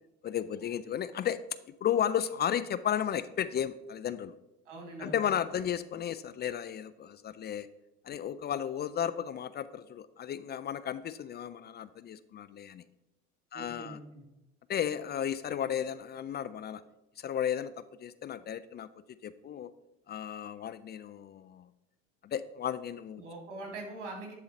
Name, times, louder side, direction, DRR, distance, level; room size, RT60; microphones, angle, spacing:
voice 1, 0.2-1.4 1.8-4.3 5.0-7.7 8.0-12.8 13.5-14.0 14.7-16.8 17.2-18.9 19.2-19.7 20.1-21.7 22.2-23.2, left 9 dB, 30° left, 14 dB, 0.3 m, -34 dB
voice 2, 4.7-5.2 13.5-14.0 23.2-24.3, right 2 dB, 85° right, 0 dB, 2.4 m, -42 dB
10.5 x 3.9 x 4.2 m, 1.0 s
hypercardioid pair, 75°, 35 cm